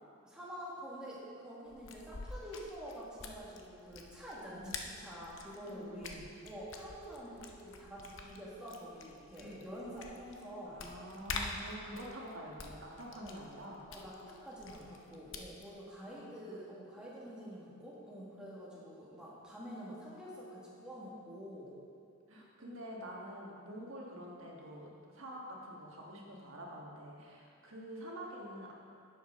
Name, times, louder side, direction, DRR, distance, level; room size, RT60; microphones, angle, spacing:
voice 1, 0.2-6.1 6.4-10.8 11.7-11.8 13.1-13.4 13.9-21.7, equal, 5° right, -7 dB, 1.7 m, -47 dB
sound 1, 1.7-15.7, left 4 dB, 60° left, 0.8 m, -48 dB
voice 2, 5.6-6.3 9.4-9.6 10.7-13.9 16.0-16.5 22.3-28.7, equal, 65° right, -2 dB, 1.5 m, -47 dB
10.5 x 7.6 x 3.7 m, 2.4 s
head